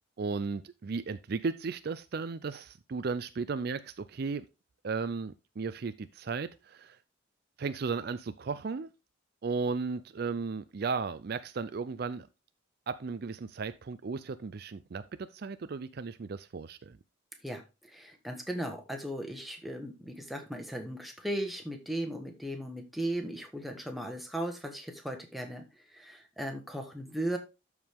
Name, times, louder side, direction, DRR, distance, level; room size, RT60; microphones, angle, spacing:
voice 1, 0.2-4.4 4.8-7.0 7.6-8.9 9.4-12.3 12.9-17.0, right 4 dB, 50° right, 0.4 m, -35 dB
voice 2, 17.4-27.4, right 1 dB, ahead, 1.4 m, -37 dB
12.5 x 4.8 x 3.6 m
head